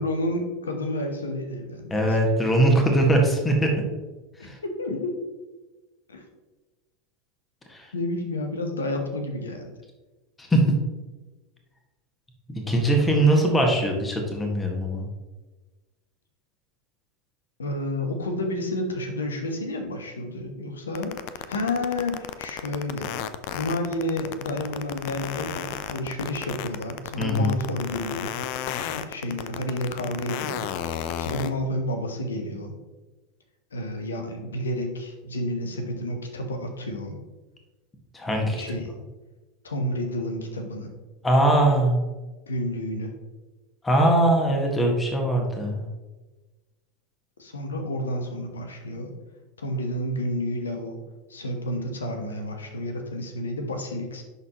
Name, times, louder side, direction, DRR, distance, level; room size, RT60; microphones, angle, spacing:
voice 1, 0.0-2.2 4.4-5.2 6.1-6.2 7.9-9.7 17.6-23.1 23.5-28.5 28.9-30.7 31.2-32.8 33.7-37.2 38.6-38.9 39.6-40.9 42.5-43.1 47.4-49.1 49.6-51.0 51.3-54.2, left 1 dB, 80° left, 5 dB, 1.1 m, -30 dB
voice 2, 1.9-3.7 4.4-4.6 7.7-7.9 10.4-10.6 12.5-15.0 27.2-27.6 38.1-38.6 41.2-42.0 43.8-45.9, right 1 dB, 15° left, 2 dB, 1.6 m, -21 dB
sound 1, 21.0-31.5, left 11 dB, 55° left, 0.4 m, -32 dB
11.0 x 4.1 x 3.0 m, 1.2 s
figure-of-eight pair, 85°, 0 cm